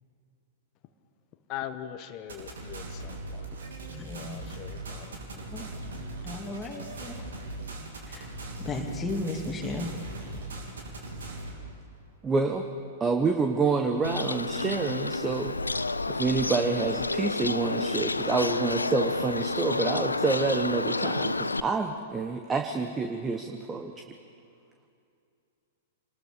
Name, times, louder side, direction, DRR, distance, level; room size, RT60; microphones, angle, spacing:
voice 1, 1.5-3.5 4.0-5.4, left 11 dB, 35° left, 9 dB, 1.0 m, -41 dB
sound 1, 2.3-11.5, right 2 dB, 65° right, 3.2 m, -39 dB
voice 2, 3.6-7.4 8.0-11.2, left 2 dB, 15° left, 1 dB, 2.5 m, -38 dB
voice 3, 12.2-12.7 13.0-15.8 16.1-23.9, right 4 dB, 15° right, 5 dB, 1.1 m, -28 dB
Bird, 14.0-21.6, left 3 dB, 85° left, 0.5 m, -30 dB
27.5 x 19.5 x 5.1 m, 2.5 s
figure-of-eight pair, 105°, 0 cm